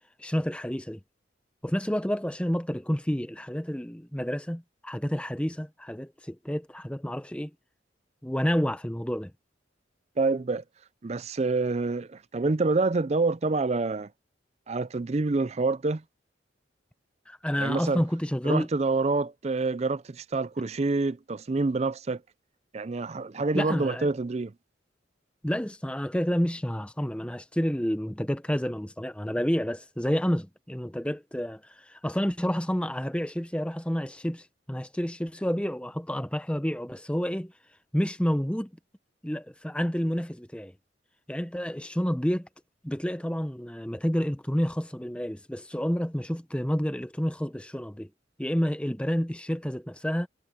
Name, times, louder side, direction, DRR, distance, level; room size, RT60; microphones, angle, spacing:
voice 1, 0.2-1.0 1.6-7.5 8.2-9.3 17.3-18.7 23.5-24.1 25.4-37.5 37.9-38.7 39.2-40.7 41.3-42.5 42.8-48.1 48.4-50.3, equal, 5° left, 0.9 m, -29 dB
voice 2, 10.2-10.6 11.0-14.1 14.7-16.0 17.6-18.0 18.4-22.2 22.7-24.5, right 3 dB, 35° right, 0.5 m, -27 dB
head